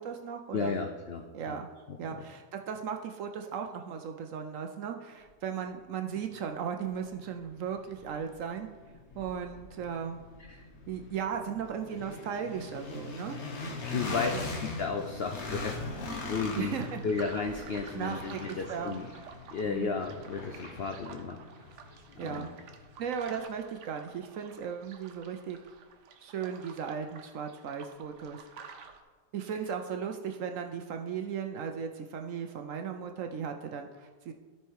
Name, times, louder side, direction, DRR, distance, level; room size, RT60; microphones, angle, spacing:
voice 1, 0.0-0.8 1.3-1.7 2.0-8.7 9.2-10.2 10.9-13.4 14.3-14.4 16.6-17.0 17.9-19.0 19.7-19.9 22.2-22.5 23.0-25.6 26.2-28.4 29.3-34.3, right 7 dB, 65° right, 5 dB, 0.9 m, -36 dB
voice 2, 0.5-1.6 1.9-2.2 10.4-10.6 13.9-16.0 16.3-16.8 17.0-19.1 19.5-21.4 22.2-22.5, left 5 dB, 75° left, 4 dB, 0.5 m, -34 dB
sound 1, 6.4-6.5 7.0-23.0, left 2 dB, 45° left, 1.3 m, -41 dB
sound 2, 16.5-29.0, right 6 dB, 80° right, 1.4 m, -51 dB
13.0 x 4.5 x 4.7 m, 1.4 s
omnidirectional pair, 1.7 m